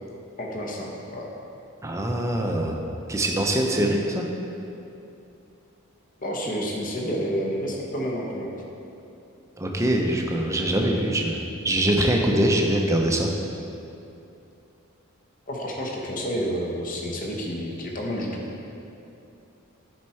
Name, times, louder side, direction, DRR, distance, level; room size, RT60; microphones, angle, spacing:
voice 1, 0.4-1.3 6.2-8.5 15.5-18.4, equal, 40° left, -1 dB, 1.0 m, -29 dB
voice 2, 1.8-2.8 3.1-4.2 9.6-11.4 11.6-13.3, right 1 dB, 15° right, 1 dB, 0.6 m, -23 dB
9.7 x 4.3 x 4.4 m, 2.8 s
head